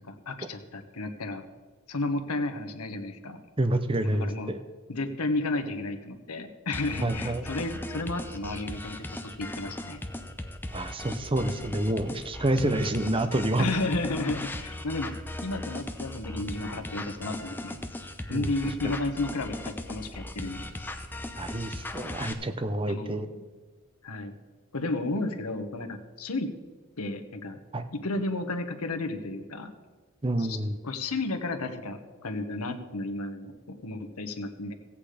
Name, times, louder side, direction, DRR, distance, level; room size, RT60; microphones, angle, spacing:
voice 1, 0.1-1.4 1.9-3.4 4.0-4.5 4.9-10.0 13.6-15.1 15.4-17.8 18.3-20.7 22.9-23.4 24.0-24.4 24.7-26.5 27.0-27.6 27.9-29.7 30.4-30.6 30.8-34.7, left 2 dB, 85° left, 7 dB, 1.1 m, -32 dB
voice 2, 3.6-4.6 7.0-7.4 10.7-13.7 18.3-18.5 18.8-18.9 21.4-23.3 27.7-27.8 30.2-30.8, right 1 dB, 25° right, 9 dB, 0.7 m, -28 dB
sound 1, 6.7-22.3, left 1 dB, 10° left, 0.6 m, -38 dB
15.0 x 8.5 x 5.0 m, 1.3 s
head